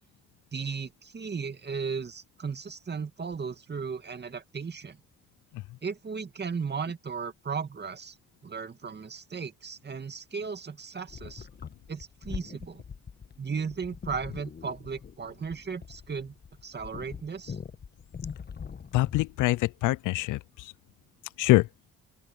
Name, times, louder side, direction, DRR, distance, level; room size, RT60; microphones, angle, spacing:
voice 1, 0.5-5.0 5.8-8.2 8.4-11.5 11.9-12.8 13.4-16.4 16.6-17.6, right 5 dB, 35° right, 2.3 m, -36 dB
sound 1, 11.1-19.3, left 6 dB, 35° left, 1.1 m, -43 dB
voice 2, 18.9-20.7 21.4-21.7, left 18 dB, 80° left, 0.5 m, -24 dB
open air
cardioid pair, 90°, 30 cm